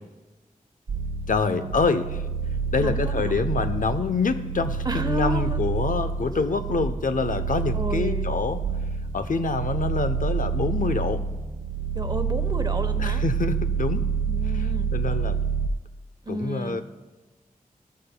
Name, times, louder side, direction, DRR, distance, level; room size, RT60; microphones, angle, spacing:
sound 1, 0.9-15.7, right 5 dB, 80° right, 0.7 m, -28 dB
voice 1, 1.3-2.2 2.7-8.6 9.1-11.2 13.0-14.0 14.4-15.4 16.3-16.8, left 4 dB, 65° left, 9 dB, 0.7 m, -26 dB
voice 2, 2.8-3.4 4.8-5.6 6.3-6.7 7.7-8.3 11.9-13.2 14.2-14.9 16.2-16.8, right 1 dB, 30° right, 8 dB, 1.0 m, -32 dB
16.5 x 12.5 x 2.2 m, 1.2 s
wide cardioid pair, 60°, 15 cm